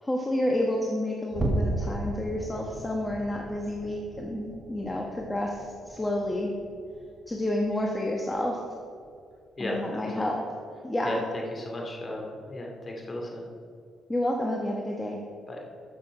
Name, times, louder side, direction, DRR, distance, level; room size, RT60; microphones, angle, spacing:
voice 1, 0.0-6.5 7.3-8.6 9.6-10.4 10.8-11.2 14.1-15.2, left 1 dB, 15° left, 0 dB, 1.2 m, -29 dB
sound 1, 1.3-8.0 8.3-8.6 9.0-9.2 9.7-9.9, right 1 dB, 35° right, 1.8 m, -36 dB
voice 2, 9.6-10.3 11.0-13.4 15.5-15.6, left 1 dB, 30° left, 0 dB, 2.5 m, -34 dB
13.0 x 6.7 x 4.9 m, 2.3 s
cardioid pair, 90°, 0 cm